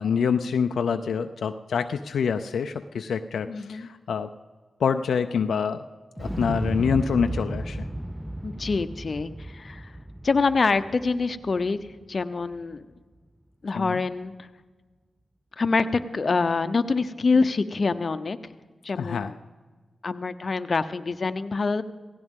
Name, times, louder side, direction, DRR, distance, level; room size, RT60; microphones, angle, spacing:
voice 1, 0.0-4.3 4.8-5.8 6.2-7.8 13.7-14.0 19.0-19.3, left 6 dB, 80° left, 7 dB, 0.4 m, -26 dB
voice 2, 3.5-3.9 8.4-10.0 10.2-12.9 13.6-14.5 15.6-18.4 18.8-19.4 20.0-21.8, left 4 dB, 50° left, 10 dB, 0.7 m, -26 dB
Explosion, 6.2-12.2 12.5-12.6, right 1 dB, 5° right, 0.5 m, -34 dB
17.0 x 16.0 x 3.7 m, 1.3 s
cardioid pair, 50°, 0 cm